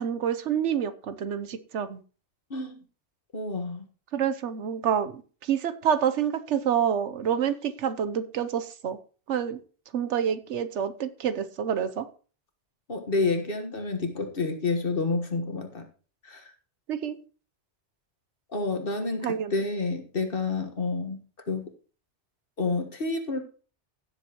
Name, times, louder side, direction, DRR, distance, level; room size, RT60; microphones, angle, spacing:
voice 1, 0.0-2.0 4.1-9.0 9.3-9.6 9.9-12.1 16.9-17.2 19.2-19.5, right 8 dB, 80° right, 12 dB, 1.1 m, -28 dB
voice 2, 2.5-2.8 3.3-3.9 12.9-15.9 16.2-16.5 18.5-21.7 22.6-23.4, left 3 dB, 50° left, 5 dB, 1.6 m, -29 dB
16.5 x 7.2 x 3.0 m, 0.38 s
omnidirectional pair, 1.2 m